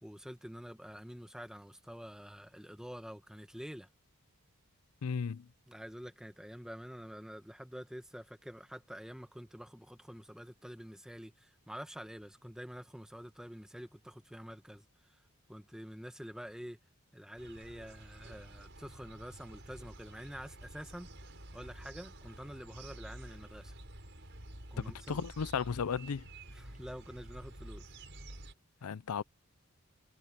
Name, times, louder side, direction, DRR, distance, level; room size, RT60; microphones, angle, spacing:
voice 1, 0.0-3.9 5.7-15.2 15.5-16.8 17.1-23.8 24.7-25.2 26.5-27.9, equal, 5° right, 1.2 m, -47 dB
voice 2, 5.0-5.5 25.1-26.3 28.8-29.2, left 6 dB, 85° left, 0.5 m, -34 dB
sound 1, 17.4-28.5, right 1 dB, 55° right, 6.3 m, -50 dB
head